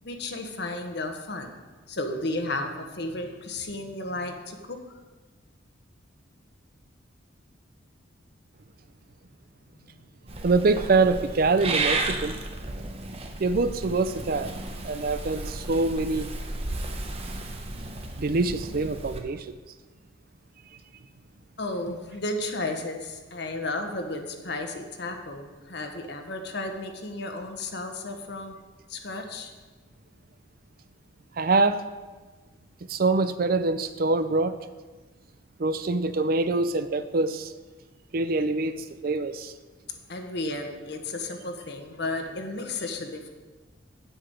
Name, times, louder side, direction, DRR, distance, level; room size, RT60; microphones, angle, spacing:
voice 1, 0.0-1.5 1.9-4.8 9.8-9.9 12.0-12.2 21.6-28.6 28.9-29.5 40.1-43.3, left 2 dB, 60° left, 4 dB, 1.2 m, -33 dB
Purr / Meow, 10.3-19.2, right 2 dB, 30° right, 0.9 m, -33 dB
voice 2, 10.4-12.4 13.4-14.5 14.8-16.3 18.2-19.5 31.4-31.8 32.9-34.6 35.6-37.5 38.1-39.5, right 3 dB, 50° right, 12 dB, 0.5 m, -24 dB
8.1 x 5.8 x 8.0 m, 1.3 s
head